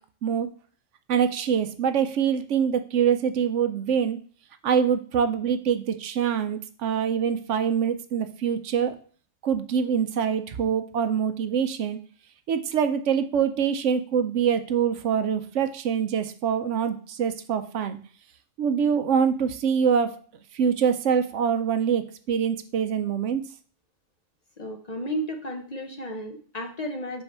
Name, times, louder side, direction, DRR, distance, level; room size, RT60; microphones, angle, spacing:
voice 1, 1.1-4.2 4.6-9.0 9.4-12.0 12.5-18.0 18.6-20.2 20.5-23.4, right 7 dB, 70° right, 9 dB, 0.9 m, -24 dB
voice 2, 24.6-27.2, equal, 35° left, 3 dB, 0.8 m, -33 dB
5.6 x 4.6 x 5.4 m, 0.43 s
omnidirectional pair, 1.3 m